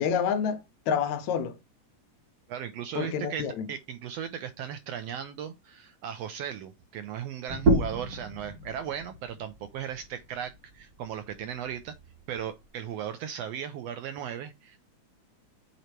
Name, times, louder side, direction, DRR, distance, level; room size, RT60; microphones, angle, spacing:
voice 1, 0.0-1.6 3.0-3.7, left 7 dB, 80° left, 2.1 m, -28 dB
voice 2, 2.5-11.9 12.3-14.8, right 9 dB, 80° right, 1.5 m, -37 dB
sound 1, 7.5-12.7, right 2 dB, 45° right, 1.4 m, -32 dB
8.1 x 2.9 x 4.4 m
omnidirectional pair, 3.4 m